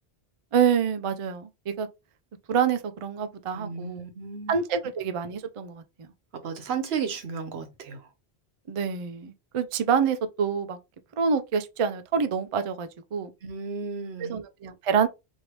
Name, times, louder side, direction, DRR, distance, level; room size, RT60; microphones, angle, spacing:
voice 1, 0.5-1.9 2.5-4.0 4.5-5.8 8.7-10.8 11.2-13.3 14.2-15.1, right 7 dB, 50° right, 0.4 m, -26 dB
voice 2, 3.5-4.6 6.3-8.1 13.4-14.4, right 6 dB, 80° right, 1.0 m, -34 dB
3.1 x 2.7 x 2.9 m
omnidirectional pair, 1.1 m